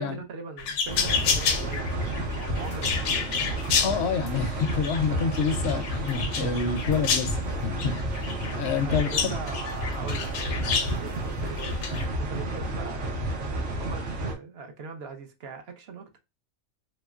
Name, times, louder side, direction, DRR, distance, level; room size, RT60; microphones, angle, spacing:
voice 1, 0.0-3.3 8.8-16.2, right 5 dB, 55° right, 0.8 m, -41 dB
sound 1, 0.6-11.0 11.6-12.0, left 6 dB, 85° left, 1.0 m, -30 dB
sound 2, 0.9-14.3, right 1 dB, 70° right, 1.2 m, -31 dB
voice 2, 3.8-7.4 7.6-8.0 8.4-9.3, left 6 dB, 65° left, 0.7 m, -28 dB
3.1 x 3.1 x 2.3 m
omnidirectional pair, 1.5 m